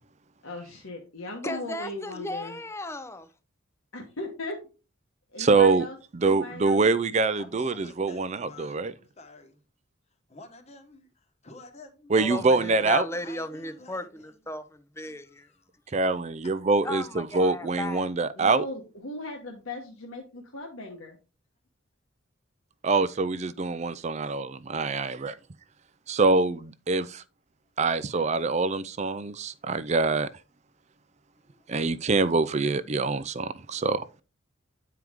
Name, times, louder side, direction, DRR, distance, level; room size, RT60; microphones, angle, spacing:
voice 1, 0.4-2.6 3.9-4.6 5.3-6.0 6.2-6.8 18.3-21.2, left 2 dB, 80° left, 1.3 m, -38 dB
voice 2, 1.4-3.3 12.2-15.5 16.8-18.1, left 2 dB, 15° left, 0.6 m, -35 dB
voice 3, 5.4-5.9 6.1-8.9 12.1-13.0 15.9-18.6 22.8-25.3 26.1-27.2 27.8-30.3 31.7-34.2, right 3 dB, 35° right, 0.4 m, -25 dB
voice 4, 7.4-9.6 10.3-11.1 11.4-12.1 12.6-14.3 15.3-15.6 16.0-16.1, left 2 dB, 30° left, 1.1 m, -49 dB
9.3 x 4.7 x 3.6 m
head